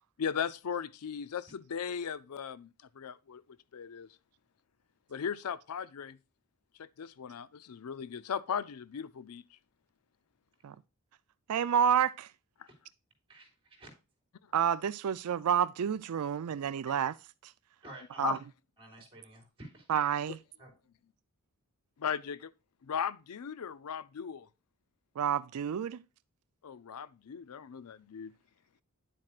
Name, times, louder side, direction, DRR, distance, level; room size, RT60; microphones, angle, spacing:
voice 1, 0.2-2.7 2.9-3.4 3.7-4.1 5.1-6.2 6.8-9.4 18.2-18.4 22.0-22.5 22.8-24.5 26.6-28.3, left 7 dB, 85° left, 0.5 m, -37 dB
voice 2, 11.5-12.3 14.5-17.1 18.2-18.4 19.9-20.4 25.2-26.0, right 8 dB, 85° right, 0.4 m, -29 dB
voice 3, 13.3-13.9 17.8-18.4 18.8-19.9 20.6-20.7, right 1 dB, 25° right, 3.9 m, -51 dB
10.0 x 7.5 x 2.4 m
head